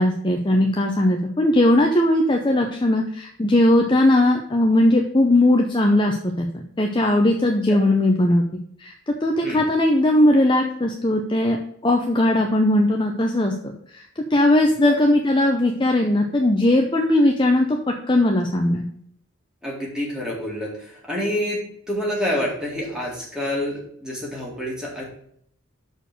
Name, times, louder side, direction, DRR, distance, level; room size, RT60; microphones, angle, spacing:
voice 1, 0.0-8.4 8.8-11.6 11.8-13.5 13.9-17.8 18.1-18.9, left 1 dB, 20° left, 2 dB, 0.6 m, -19 dB
voice 2, 14.6-15.0 19.6-25.0, left 1 dB, 5° right, -4 dB, 2.2 m, -28 dB
6.7 x 4.5 x 6.1 m, 0.66 s
head